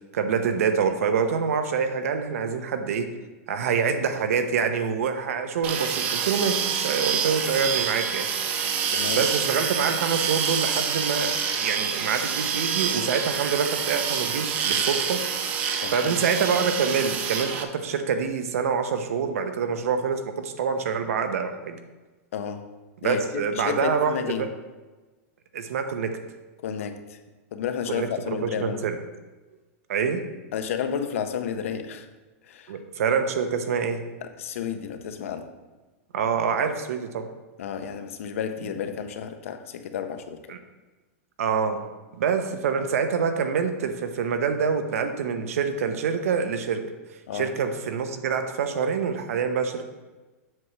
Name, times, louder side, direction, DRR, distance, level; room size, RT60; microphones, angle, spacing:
voice 1, 0.1-3.1 3.5-8.3 9.1-15.2 15.9-21.8 23.0-24.5 25.5-26.1 27.9-29.0 29.9-30.2 32.7-34.0 36.1-37.3 40.5-40.6 41.4-41.8 42.2-46.8 47.3-49.9, right 6 dB, 70° right, 8 dB, 0.7 m, -26 dB
sound 1, 5.6-17.6, right 7 dB, 20° right, 0.3 m, -27 dB
voice 2, 8.9-9.2 15.8-16.2 22.3-22.7 23.0-24.4 26.6-27.2 27.5-28.8 30.5-32.1 32.5-32.7 34.2-35.5 37.6-40.4 47.3-47.5, left 8 dB, 65° left, 8 dB, 0.6 m, -31 dB
7.5 x 3.2 x 5.9 m, 1.2 s
supercardioid pair, 180°, 8 cm